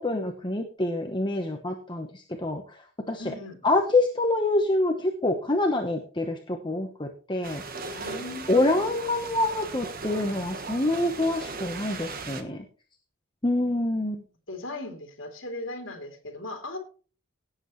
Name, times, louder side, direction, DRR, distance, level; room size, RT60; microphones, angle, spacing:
voice 1, 0.0-3.2 3.6-7.6 8.5-12.6 13.4-14.2, left 2 dB, 20° left, 3 dB, 1.0 m, -26 dB
voice 2, 3.2-3.6 7.9-8.9 14.5-16.8, left 2 dB, 65° left, 3 dB, 3.1 m, -38 dB
sound 1, 7.4-12.4, right 3 dB, 45° right, 1.4 m, -37 dB
17.5 x 8.0 x 3.2 m, 0.38 s
head